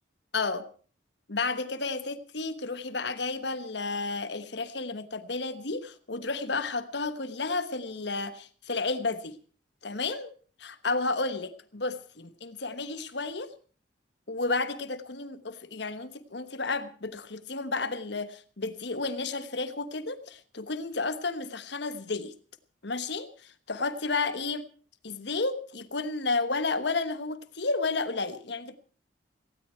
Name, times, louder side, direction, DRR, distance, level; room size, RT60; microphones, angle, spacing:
voice 1, 0.3-0.6 1.3-9.3 9.8-10.3 10.6-13.5 14.3-22.3 22.8-23.3 23.7-24.6 25.0-28.8, left 3 dB, 60° left, 12 dB, 1.3 m, -32 dB
18.5 x 16.5 x 4.5 m, 0.42 s
head